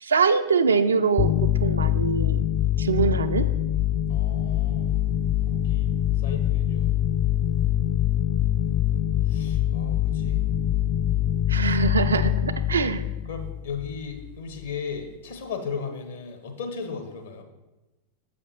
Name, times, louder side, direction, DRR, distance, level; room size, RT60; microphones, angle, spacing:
voice 1, 0.0-2.4 2.8-3.5 11.5-13.0, right 5 dB, 70° right, 10 dB, 0.4 m, -23 dB
sound 1, 1.2-14.3, left 11 dB, 30° left, 0.3 m, -24 dB
voice 2, 4.1-4.9 5.4-6.9 9.2-10.5 13.2-17.4, left 5 dB, 65° left, 6 dB, 0.9 m, -36 dB
6.9 x 5.0 x 4.4 m, 1.0 s
figure-of-eight pair, 90°, 0 cm